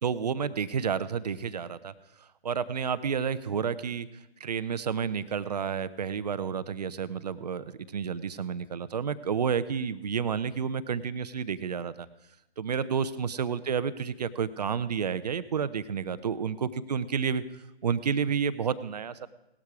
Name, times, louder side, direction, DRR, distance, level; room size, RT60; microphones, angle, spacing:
voice 1, 0.0-1.9 2.2-4.1 4.4-12.1 12.6-17.4 17.8-19.3, right 7 dB, 40° right, 14 dB, 0.7 m, -30 dB
18.0 x 12.5 x 4.8 m, 0.91 s
figure-of-eight pair, 135°, 32 cm